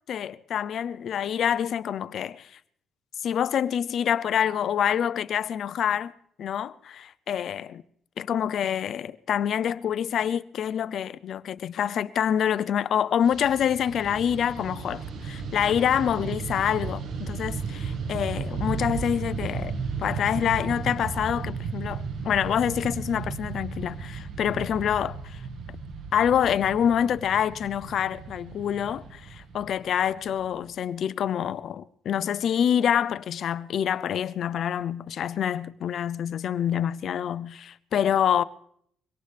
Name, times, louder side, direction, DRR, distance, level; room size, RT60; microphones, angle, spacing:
voice 1, 0.1-2.5 3.2-6.1 6.4-7.8 8.2-19.7 20.0-25.4 26.1-38.4, left 9 dB, 65° left, 0.6 m, -26 dB
Fixed-wing aircraft airplane, 13.2-30.7, right 5 dB, 70° right, 1.7 m, -35 dB
23.5 x 18.0 x 3.4 m
cardioid pair, 90°, 0 cm